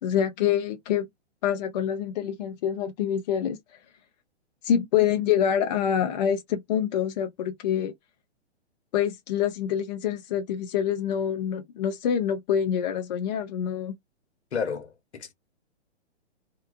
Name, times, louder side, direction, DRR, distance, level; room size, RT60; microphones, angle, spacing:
voice 1, 0.0-1.1 1.4-3.6 4.6-7.9 8.9-13.9, left 9 dB, 40° left, 0.6 m, -26 dB
voice 2, 14.5-15.3, left 6 dB, 75° left, 1.0 m, -31 dB
2.7 x 2.2 x 2.4 m
hypercardioid pair, 125°, 34 cm